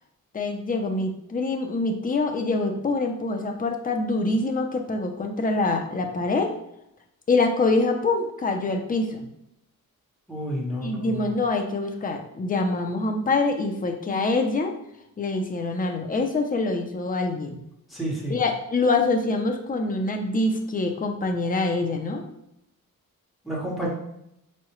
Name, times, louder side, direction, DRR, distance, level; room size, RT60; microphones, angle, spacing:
voice 1, 0.3-6.5 7.3-9.3 10.8-14.7 15.2-17.6 18.3-22.2, left 3 dB, 25° left, 3 dB, 0.5 m, -25 dB
voice 2, 10.3-11.3 17.9-18.4 23.4-23.9, equal, ahead, -5 dB, 1.1 m, -30 dB
4.7 x 2.1 x 3.0 m, 0.80 s
cardioid pair, 115°, 36 cm